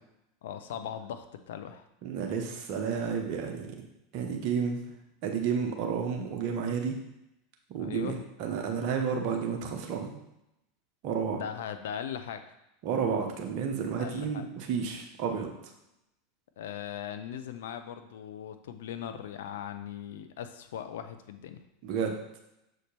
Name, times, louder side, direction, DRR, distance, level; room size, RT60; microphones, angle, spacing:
voice 1, 0.4-1.8 7.8-8.2 11.3-12.4 14.0-14.5 16.6-21.6, left 9 dB, 75° left, 9 dB, 0.5 m, -39 dB
voice 2, 2.0-3.7 4.1-4.8 5.2-7.0 7.7-10.2 11.0-11.4 12.8-15.5 21.8-22.1, right 6 dB, 55° right, 2 dB, 1.0 m, -31 dB
6.4 x 4.5 x 3.4 m, 0.87 s
hypercardioid pair, 90°, 0 cm